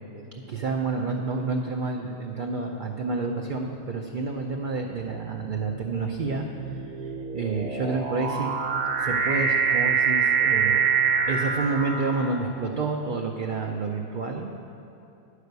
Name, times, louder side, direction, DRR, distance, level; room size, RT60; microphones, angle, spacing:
voice 1, 0.5-6.5 7.0-8.5 9.0-10.8 11.3-14.6, right 4 dB, 55° right, 1 dB, 0.5 m, -29 dB
sound 1, 3.2-3.6 4.4-12.6, right 6 dB, 75° right, 1.2 m, -26 dB
10.5 x 4.9 x 8.0 m, 2.7 s
omnidirectional pair, 1.5 m